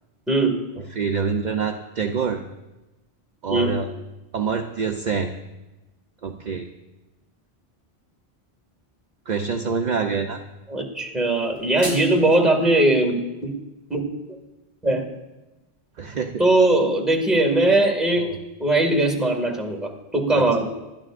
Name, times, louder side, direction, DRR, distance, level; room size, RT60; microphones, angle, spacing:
voice 1, 0.3-0.6 3.5-3.8 10.7-13.1 13.4-13.5 13.9-14.0 14.8-15.0 16.4-18.3 18.6-20.7, right 2 dB, ahead, 2 dB, 2.0 m, -20 dB
voice 2, 0.9-2.4 3.4-3.9 4.3-5.3 6.2-6.7 9.3-10.4 16.0-16.4 18.2-18.4 20.3-20.5, right 5 dB, 50° right, 4 dB, 0.7 m, -26 dB
sound 1, 11.3-12.4, equal, 60° left, 4.8 m, -36 dB
25.5 x 12.0 x 2.5 m, 1.1 s
omnidirectional pair, 1.1 m